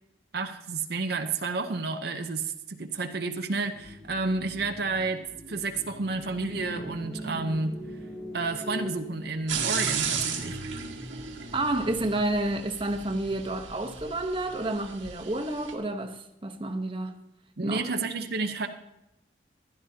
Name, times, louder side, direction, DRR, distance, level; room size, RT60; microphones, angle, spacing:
voice 1, 0.3-5.2 5.5-7.8 8.3-10.6 17.6-18.7, right 3 dB, 55° right, 0.7 m, -30 dB
sound 1, 3.6-11.9, equal, 10° left, 1.2 m, -43 dB
sound 2, 9.5-15.7, right 6 dB, 85° right, 1.9 m, -34 dB
voice 2, 11.5-17.2 17.6-17.9, right 1 dB, 25° right, 1.0 m, -30 dB
15.5 x 11.5 x 2.8 m
head